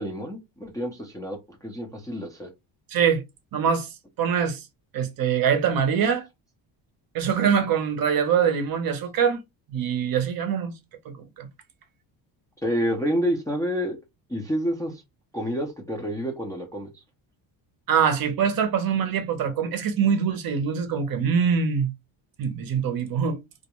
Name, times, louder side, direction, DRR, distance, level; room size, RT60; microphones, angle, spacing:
voice 1, 0.0-1.4 1.6-2.5 12.6-14.0 14.3-15.0 15.3-16.9, equal, 10° left, 0.4 m, -28 dB
voice 2, 2.9-3.2 3.5-3.9 4.2-4.6 4.9-6.3 7.1-9.4 9.7-10.7 11.0-11.5 17.9-21.9 22.4-23.4, right 7 dB, 50° right, 0.6 m, -23 dB
2.3 x 2.1 x 2.8 m
cardioid pair, 135°, 47 cm